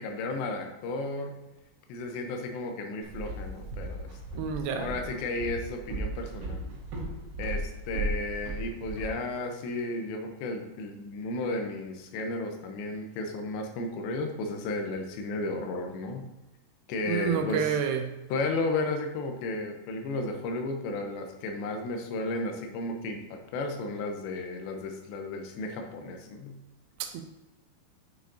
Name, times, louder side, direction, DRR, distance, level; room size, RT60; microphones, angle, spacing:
voice 1, 0.0-1.4 1.9-4.1 4.7-6.8 7.4-16.2 16.9-17.8 18.3-26.6, left 2 dB, 85° left, 4 dB, 3.1 m, -33 dB
Walk footsteps, 3.0-9.1, right 2 dB, 55° right, 2.4 m, -36 dB
voice 2, 4.4-4.9 17.1-18.1 27.0-27.2, right 7 dB, 80° right, 6 dB, 2.6 m, -29 dB
8.1 x 6.3 x 2.7 m, 1.0 s
omnidirectional pair, 5.0 m